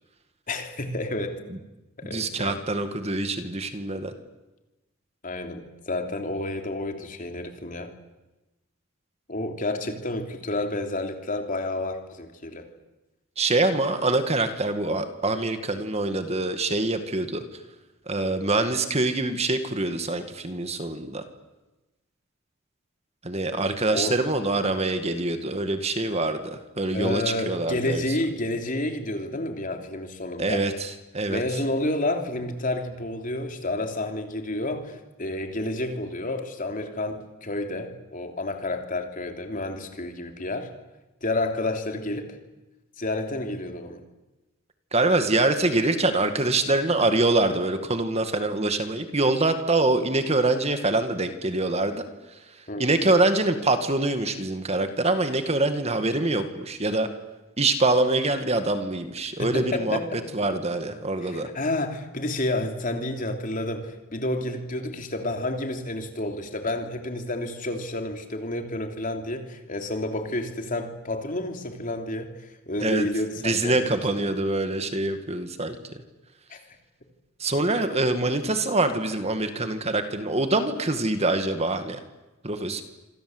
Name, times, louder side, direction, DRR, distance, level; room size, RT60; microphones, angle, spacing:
voice 1, 0.5-1.4 2.0-2.6 5.2-7.9 9.3-12.7 23.9-24.2 26.9-30.7 31.3-40.7 41.2-42.4 43.0-44.0 52.7-52.9 59.4-60.2 61.2-73.8 74.1-74.3 76.5-76.8, left 2 dB, 40° left, 5 dB, 3.2 m, -30 dB
voice 2, 2.0-4.1 13.4-17.4 18.1-21.2 23.2-28.0 30.4-31.4 44.9-52.0 52.8-57.1 57.6-60.0 60.3-61.5 72.8-73.1 73.4-76.0 77.4-82.0 82.4-82.8, right 2 dB, 30° right, 8 dB, 2.0 m, -25 dB
27.0 x 26.5 x 8.0 m, 1.1 s
head